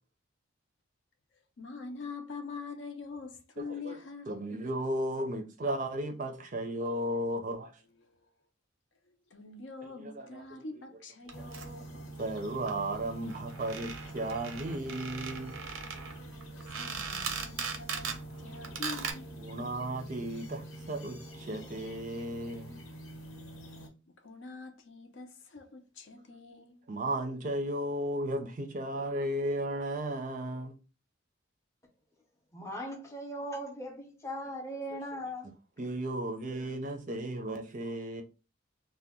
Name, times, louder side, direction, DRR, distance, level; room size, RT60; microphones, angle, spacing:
voice 1, 1.6-4.3 6.3-6.4 8.0-8.3 9.3-12.1 15.8-16.2 16.7-19.3 24.2-26.8, left 4 dB, 60° left, 0.5 m, -45 dB
voice 2, 3.6-4.0 4.3-7.7 9.8-10.6 11.4-11.5 12.2-15.6 18.7-18.8 19.4-22.8 26.3-26.4 26.9-30.8 35.1-35.2 35.8-38.2, right 1 dB, 40° right, 0.5 m, -35 dB
sound 1, 11.3-23.9, right 1 dB, 90° left, 1.0 m, -46 dB
sound 2, 11.3-11.7 12.4-12.5 12.7-12.8 13.0-13.1 13.2-18.2 18.6-19.1, right 6 dB, 85° right, 0.6 m, -39 dB
voice 3, 32.5-35.5, equal, 15° left, 0.6 m, -39 dB
2.7 x 2.1 x 3.5 m
head